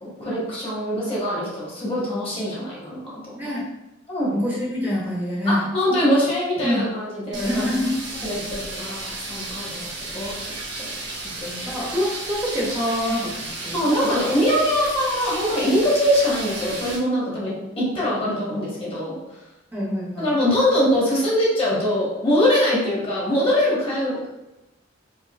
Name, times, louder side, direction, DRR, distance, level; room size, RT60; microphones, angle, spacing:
voice 1, 0.0-3.4 4.1-4.4 5.4-7.7 8.2-10.3 10.8-10.9 11.4-11.7 13.7-19.2 20.2-24.3, equal, 30° left, -7 dB, 1.3 m, -23 dB
voice 2, 3.3-3.7 4.3-5.7 6.6-6.9 7.3-8.0 11.7-13.9 19.7-20.4 24.1-24.3, left 1 dB, 10° right, -6 dB, 0.8 m, -26 dB
sound 1, 7.3-17.0, right 2 dB, 70° right, 1.0 m, -33 dB
4.8 x 2.5 x 2.4 m, 0.97 s
head